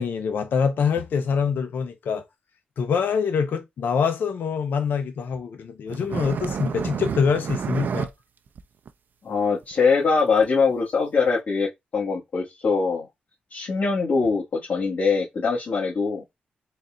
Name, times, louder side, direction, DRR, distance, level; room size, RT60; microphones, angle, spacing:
voice 1, 0.0-2.2 2.8-8.1, left 6 dB, 80° left, 0.7 m, -25 dB
sound 1, 5.9-8.1 8.5-8.6 8.9-9.0 9.6-9.7 10.4-10.5 11.3-11.4, right 6 dB, 65° right, 0.4 m, -29 dB
voice 2, 9.2-13.1 13.5-16.2, left 4 dB, 65° left, 1.5 m, -23 dB
4.0 x 2.4 x 3.8 m
cardioid pair, 85°, 3 cm